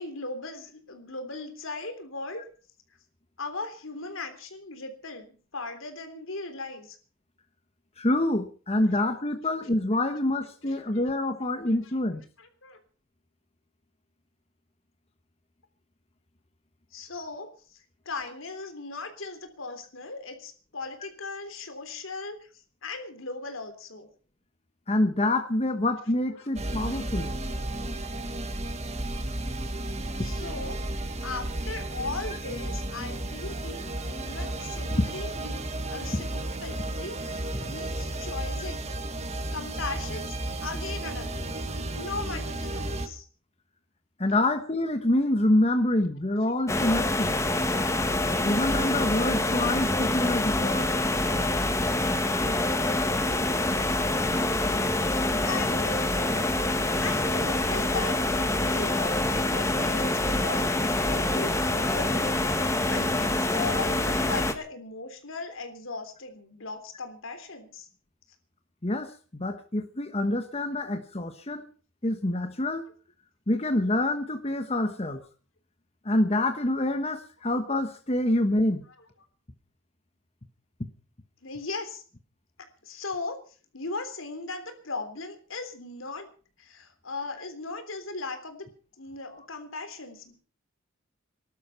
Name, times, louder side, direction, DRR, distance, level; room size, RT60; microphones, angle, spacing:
voice 1, 0.0-2.4 3.4-7.0 10.6-10.8 11.8-11.9 12.4-12.8 16.9-17.8 18.1-22.5 22.8-24.1 26.4-26.5 26.9-27.1 27.7-27.8 30.2-30.8 31.2-38.9 39.5-41.6 42.0-43.3 55.4-56.0 57.0-67.9 81.4-82.0 82.8-83.4 83.7-86.3 86.6-88.7 89.0-90.4, left 3 dB, 80° left, 7 dB, 3.4 m, -38 dB
voice 2, 8.0-12.2 24.9-27.4 34.4-34.5 35.0-35.1 36.1-36.2 44.2-47.3 48.4-50.9 68.8-71.7 72.0-72.9 73.5-75.2 76.0-78.8, left 1 dB, 30° left, 7 dB, 1.2 m, -26 dB
sound 1, 26.6-43.1, right 1 dB, 35° right, 1.6 m, -33 dB
sound 2, 46.7-64.5, left 2 dB, 15° left, 1.5 m, -26 dB
19.0 x 12.0 x 5.7 m, 0.40 s
head